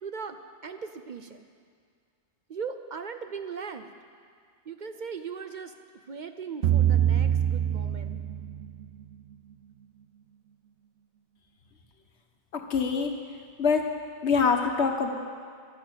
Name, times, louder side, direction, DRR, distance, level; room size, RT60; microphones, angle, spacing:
voice 1, 0.0-1.4 2.5-3.9 4.7-5.7 6.1-8.2, right 6 dB, 50° right, 8 dB, 0.7 m, -38 dB
sound 1, 6.6-8.9, right 10 dB, 80° right, 0.9 m, -24 dB
voice 2, 12.5-13.1 13.6-13.8 14.2-15.1, left 5 dB, 80° left, 4 dB, 1.5 m, -24 dB
12.0 x 11.0 x 8.0 m, 2.1 s
omnidirectional pair, 1.1 m